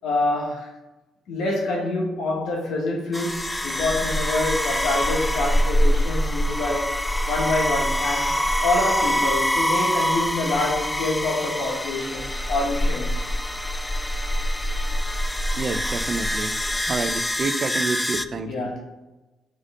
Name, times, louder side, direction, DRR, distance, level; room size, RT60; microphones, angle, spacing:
voice 1, 0.0-0.7 1.3-6.9 7.2-13.3 18.5-18.8, left 2 dB, 80° left, -1 dB, 1.6 m, -26 dB
sound 1, 3.1-18.3, equal, 10° left, 0.3 m, -25 dB
voice 2, 15.6-16.6 16.9-18.7, right 4 dB, 45° right, 9 dB, 0.5 m, -28 dB
5.6 x 3.4 x 5.0 m, 1.1 s
cardioid pair, 90°, 0 cm